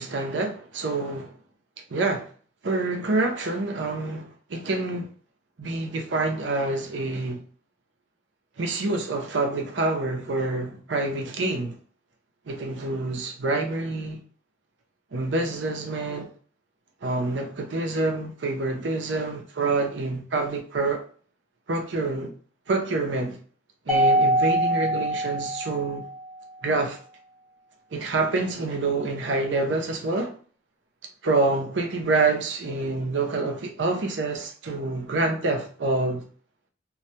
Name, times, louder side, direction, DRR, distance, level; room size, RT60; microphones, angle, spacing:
voice 1, 0.0-1.3 1.9-2.3 2.6-5.1 5.6-7.4 8.6-11.7 12.5-14.2 15.1-16.3 17.0-21.0 21.7-22.3 22.7-23.4 23.9-26.0 26.6-27.0 27.9-30.3 31.2-36.3, right 3 dB, 85° right, 0.6 m, -27 dB
Mallet percussion, 23.9-26.3, right 1 dB, 5° left, 0.4 m, -23 dB
2.2 x 2.1 x 2.7 m
head